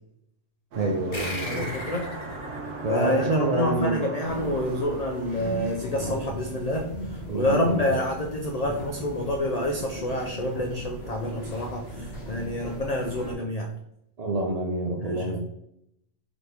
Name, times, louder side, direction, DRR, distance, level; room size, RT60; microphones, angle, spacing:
voice 1, 0.7-1.7 2.8-4.0 7.3-8.0 14.2-15.4, right 2 dB, 60° right, -1 dB, 0.4 m, -27 dB
sound 1, 0.7-6.2, right 3 dB, 90° right, 1.0 m, -39 dB
sound 2, 1.1-4.1, left 1 dB, 25° left, 0.7 m, -38 dB
voice 2, 1.5-2.1 2.9-13.7 15.0-15.4, left 1 dB, 75° left, 1 dB, 0.3 m, -28 dB
sound 3, 4.2-13.3, right 1 dB, 50° left, 1.4 m, -38 dB
4.0 x 2.9 x 3.3 m, 0.76 s
omnidirectional pair, 1.3 m